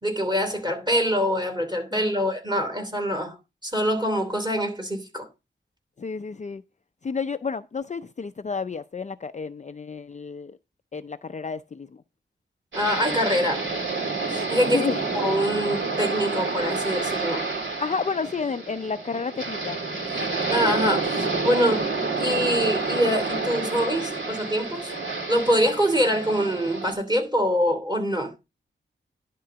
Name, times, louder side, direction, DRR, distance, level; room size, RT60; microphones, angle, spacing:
voice 1, 0.0-3.4 3.6-5.3 12.7-13.7 14.3-17.5 20.5-24.9 25.3-28.3, equal, 20° right, 2.9 m, -25 dB
voice 2, 1.9-2.3 6.0-6.6 7.0-10.6 10.9-12.0 14.7-15.0 17.8-19.8, left 5 dB, 35° left, 0.5 m, -31 dB
sound 1, 12.7-26.9, right 3 dB, 65° right, 2.9 m, -29 dB
11.0 x 3.7 x 6.8 m
wide cardioid pair, 85°, 20 cm